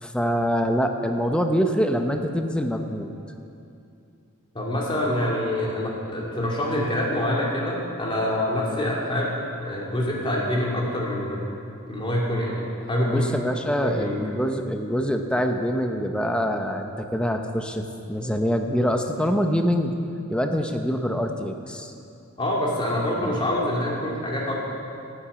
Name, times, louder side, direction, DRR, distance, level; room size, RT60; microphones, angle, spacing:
voice 1, 0.0-3.1 13.1-19.9 20.3-21.9 23.2-23.4, equal, 5° left, 5 dB, 0.7 m, -25 dB
voice 2, 4.5-9.3 9.6-11.4 11.9-13.3 13.8-14.2 22.4-24.5, left 1 dB, 25° left, -3 dB, 2.5 m, -26 dB
12.5 x 8.8 x 8.5 m, 2.6 s
head